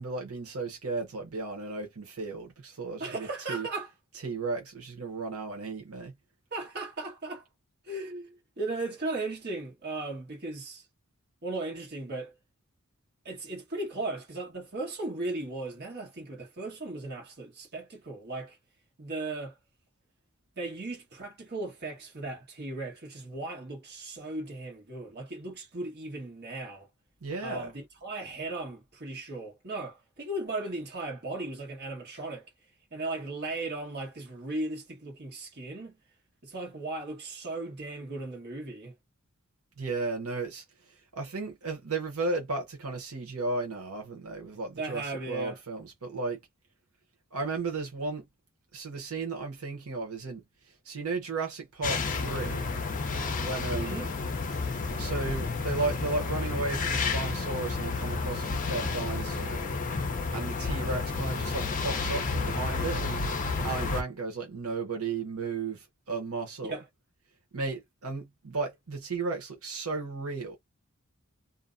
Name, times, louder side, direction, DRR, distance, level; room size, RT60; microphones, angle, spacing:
voice 1, 0.0-3.7 4.2-6.1 27.2-27.7 39.8-40.6 41.1-46.4 47.3-48.2 48.7-50.4 50.8-52.7 53.4-54.0 55.0-59.6 60.3-63.2 63.6-66.8 67.5-70.5, right 3 dB, 85° right, 0.9 m, -34 dB
voice 2, 3.0-3.9 6.5-7.4 7.8-10.9 11.4-12.3 13.2-18.6 19.0-19.5 20.6-26.9 27.4-32.5 32.9-36.0 36.4-38.9 44.8-45.6 53.7-54.1 66.6-66.8, right 2 dB, 50° right, 1.2 m, -37 dB
sound 1, 51.8-64.0, left 4 dB, 40° left, 0.5 m, -31 dB
2.6 x 2.1 x 2.5 m
head